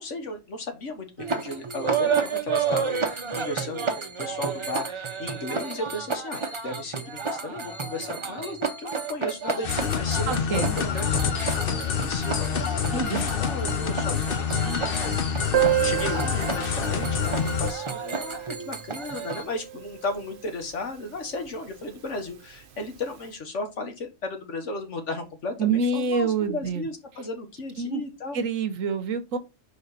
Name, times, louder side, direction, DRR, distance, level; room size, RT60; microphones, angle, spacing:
voice 1, 0.0-28.4, left 2 dB, 70° left, 1.7 m, -35 dB
sound 1, 1.2-19.4, right 5 dB, 30° right, 0.6 m, -31 dB
sound 2, 9.6-17.7, left 7 dB, 50° left, 0.9 m, -27 dB
voice 2, 10.3-10.7 12.9-13.2 25.6-26.8 27.8-28.0 28.3-29.4, right 4 dB, 85° right, 1.3 m, -26 dB
Piano, 15.5-20.9 21.2-21.3 21.5-21.6 22.0-22.1 22.8-23.0, right 12 dB, 60° right, 1.0 m, -30 dB
5.0 x 4.9 x 4.0 m
omnidirectional pair, 1.3 m